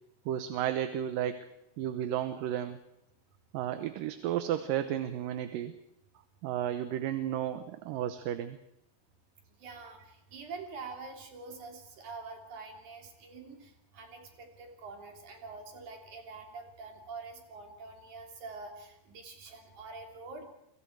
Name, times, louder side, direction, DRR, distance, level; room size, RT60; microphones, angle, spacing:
voice 1, 0.3-1.5 1.8-2.8 3.5-5.7 6.4-8.6, right 11 dB, 80° right, 10 dB, 2.6 m, -33 dB
voice 2, 9.6-20.4, right 4 dB, 60° right, 3 dB, 4.7 m, -46 dB
29.0 x 24.5 x 4.8 m, 0.83 s
omnidirectional pair, 3.9 m